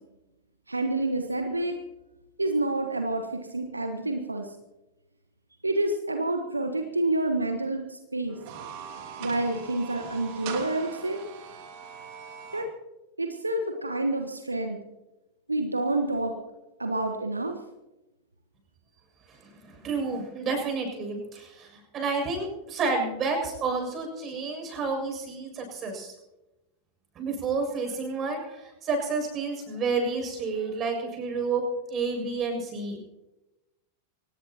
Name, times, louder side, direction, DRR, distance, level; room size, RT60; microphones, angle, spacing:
voice 1, 0.7-1.8 2.4-4.5 5.6-8.4 9.2-11.2 12.5-12.7 13.2-14.8 15.5-16.3 16.8-17.5, right 2 dB, 80° right, 5 dB, 1.3 m, -28 dB
sound 1, 8.3-12.7, right 6 dB, 45° right, 2.9 m, -41 dB
voice 2, 19.6-26.1 27.2-31.6 31.9-33.1, right 4 dB, 30° right, 3 dB, 7.1 m, -30 dB
25.0 x 19.0 x 3.0 m, 0.99 s
figure-of-eight pair, 90°, 0 cm